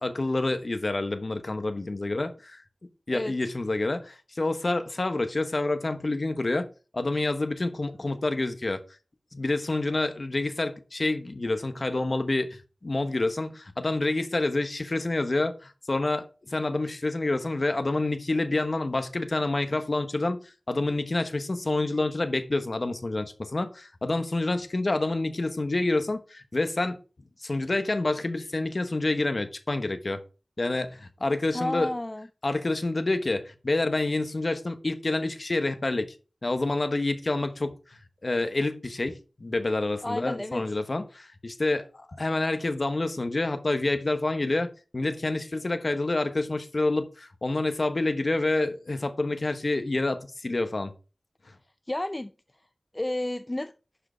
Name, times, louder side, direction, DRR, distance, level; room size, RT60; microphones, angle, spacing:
voice 1, 0.0-2.6 3.1-6.7 6.9-8.8 9.3-27.0 27.4-30.2 30.6-31.9 32.4-36.1 36.4-50.9, left 2 dB, 55° left, 1.2 m, -28 dB
voice 2, 31.5-32.3 40.0-40.6 51.9-52.3 52.9-53.7, left 1 dB, 25° left, 0.5 m, -31 dB
11.5 x 4.9 x 4.5 m
wide cardioid pair, 65°, 0 cm